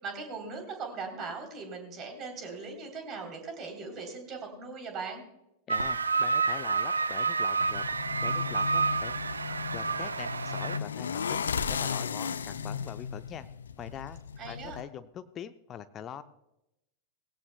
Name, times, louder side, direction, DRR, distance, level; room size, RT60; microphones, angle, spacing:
voice 1, 0.0-5.2 14.4-14.8, right 4 dB, 30° right, 4 dB, 3.4 m, -39 dB
voice 2, 5.7-7.8 8.2-9.2 9.7-13.5 13.8-14.2 14.5-16.2, left 9 dB, 30° left, 11 dB, 0.6 m, -43 dB
sound 1, 5.7-10.8, right 4 dB, 75° right, 0.5 m, -29 dB
sound 2, 7.6-14.8, left 6 dB, 70° left, 0.6 m, -35 dB
18.5 x 16.5 x 2.2 m, 0.88 s
figure-of-eight pair, 90°, 0 cm